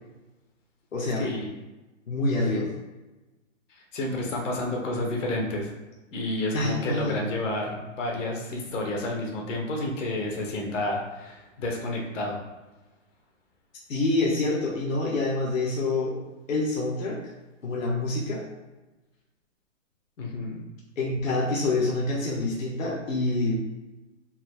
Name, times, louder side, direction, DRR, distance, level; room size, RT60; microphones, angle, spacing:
voice 1, 0.9-1.3 2.1-2.7 6.5-7.2 13.9-16.1 16.5-17.2 17.6-18.4 21.0-23.6, left 2 dB, 90° left, -3 dB, 1.2 m, -26 dB
voice 2, 3.9-5.7 6.1-12.4 20.2-20.6, left 1 dB, 70° left, 0 dB, 1.4 m, -30 dB
4.4 x 4.4 x 2.2 m, 1.1 s
hypercardioid pair, 145°, 39 cm